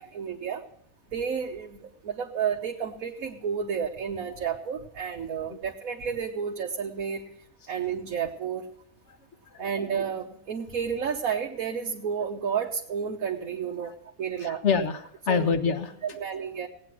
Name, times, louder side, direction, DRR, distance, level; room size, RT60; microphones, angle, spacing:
voice 1, 0.1-0.6 1.1-7.3 7.7-8.7 9.6-14.6 15.3-15.5 16.0-16.7, right 7 dB, 75° right, 1 dB, 1.5 m, -31 dB
voice 2, 14.4-16.2, left 5 dB, 55° left, 9 dB, 1.5 m, -27 dB
17.5 x 9.4 x 6.1 m, 0.70 s
omnidirectional pair, 1.5 m